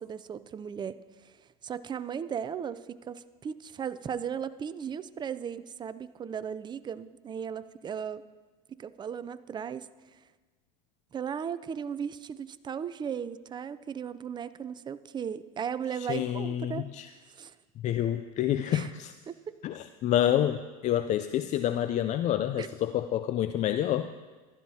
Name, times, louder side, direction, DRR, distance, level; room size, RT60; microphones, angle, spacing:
voice 1, 0.0-8.2 8.7-10.2 11.1-16.9 17.3-17.5 18.7-18.9 19.3-19.4 22.6-22.7, right 7 dB, 25° right, 13 dB, 0.4 m, -36 dB
voice 2, 15.9-17.1 17.8-19.1 19.6-24.2, left 11 dB, 40° left, 11 dB, 0.4 m, -28 dB
15.0 x 12.0 x 2.8 m, 1.3 s
hypercardioid pair, 95°, 19 cm